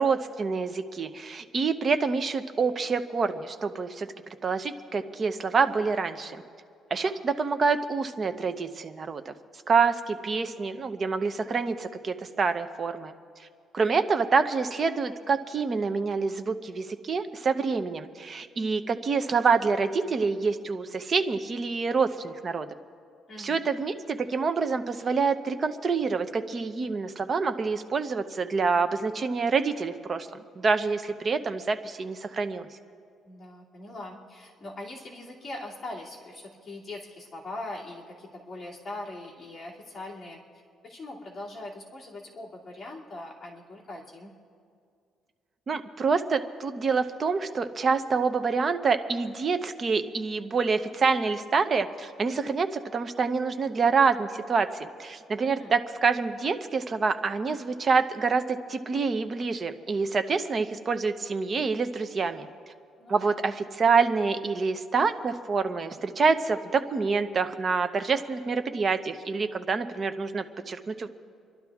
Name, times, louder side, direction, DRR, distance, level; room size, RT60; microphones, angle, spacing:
voice 1, 0.0-4.1 4.4-6.4 6.9-9.3 9.7-13.1 13.7-22.7 23.4-32.7 45.7-62.5 63.1-71.1, right 4 dB, 35° right, 9 dB, 0.7 m, -27 dB
voice 2, 23.3-23.7 33.2-40.4 40.8-44.3 55.4-55.7 63.0-63.4, left 2 dB, 25° left, -4 dB, 2.5 m, -41 dB
28.0 x 12.0 x 3.6 m, 2.3 s
cardioid pair, 135°, 0 cm